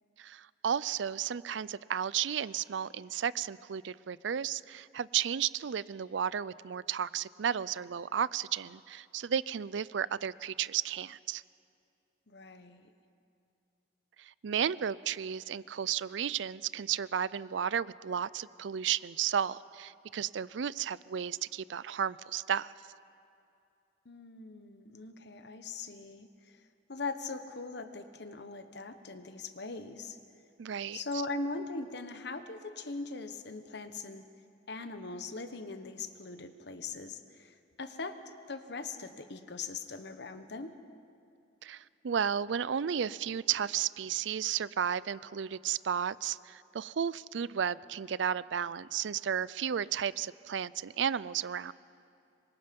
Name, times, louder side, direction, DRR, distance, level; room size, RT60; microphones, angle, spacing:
voice 1, 0.2-11.4 14.2-22.7 30.6-31.0 41.6-51.7, right 8 dB, 70° right, 19 dB, 0.4 m, -33 dB
voice 2, 12.3-12.9 24.0-26.6 26.9-30.2 30.9-34.2 34.7-38.2 38.5-40.8, left 3 dB, 60° left, 9 dB, 1.2 m, -40 dB
26.0 x 23.5 x 5.3 m, 2.6 s
head